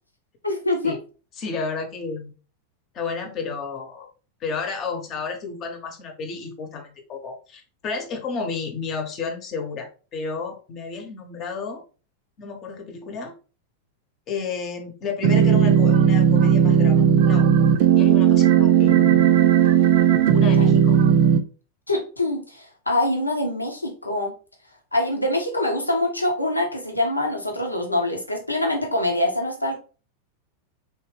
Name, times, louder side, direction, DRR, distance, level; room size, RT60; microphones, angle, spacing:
voice 1, 0.4-1.0 20.6-20.7 21.9-24.3 24.9-29.8, left 1 dB, 85° left, 2 dB, 0.8 m, -24 dB
voice 2, 1.4-2.3 2.9-4.1 4.4-11.8 12.4-13.3 14.3-19.4 20.3-21.0, left 5 dB, 35° left, 5 dB, 0.9 m, -32 dB
sound 1, 15.2-21.4, right 8 dB, 50° right, 0.4 m, -16 dB
3.6 x 3.0 x 3.1 m, 0.35 s
figure-of-eight pair, 90°, 0 cm